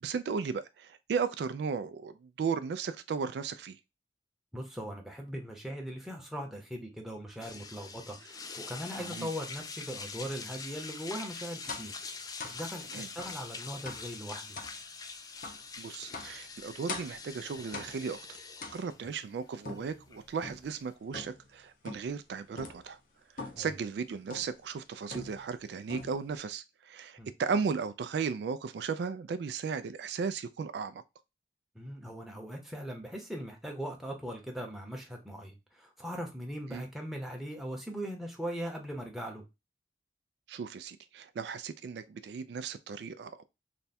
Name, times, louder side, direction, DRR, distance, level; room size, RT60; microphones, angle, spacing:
voice 1, 0.0-3.8 9.0-9.3 12.9-13.1 15.8-18.4 18.7-23.0 23.3-31.0 36.7-36.8 40.5-43.4, right 5 dB, 70° right, 0.3 m, -36 dB
voice 2, 4.5-11.9 12.4-14.6 23.5-23.7 27.2-27.3 31.7-39.4, equal, ahead, 0.8 m, -40 dB
sound 1, 7.4-20.9, left 4 dB, 20° left, 0.3 m, -44 dB
sound 2, 11.7-12.0 12.4-12.6 13.2-13.4 13.9-14.1 14.6-14.8 15.4-15.7 16.1-16.4 16.9-17.3 17.7-18.1 18.6-19.1 19.6-20.7 21.1-21.5 21.9-22.2 22.6-22.9 23.4-23.7 24.3-24.6 25.1-25.6 25.9-26.4, left 3 dB, 50° left, 0.7 m, -43 dB
3.4 x 2.2 x 4.1 m
head